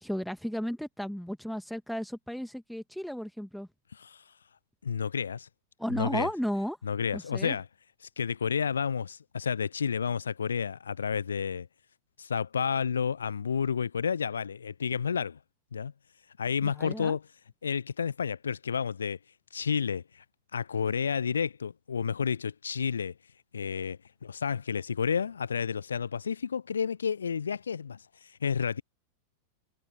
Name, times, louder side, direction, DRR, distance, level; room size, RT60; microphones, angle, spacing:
voice 1, 0.0-3.7 5.8-6.8 7.1-7.5 16.6-17.2, equal, ahead, 2.4 m, -34 dB
voice 2, 3.9-4.2 4.8-5.5 6.0-6.3 6.8-7.6 8.2-11.7 12.2-15.4 15.7-15.9 16.4-17.2 17.6-19.2 19.5-20.2 20.5-23.1 23.5-28.8, left 6 dB, 70° left, 0.8 m, -31 dB
figure-of-eight pair, 90°, 0 cm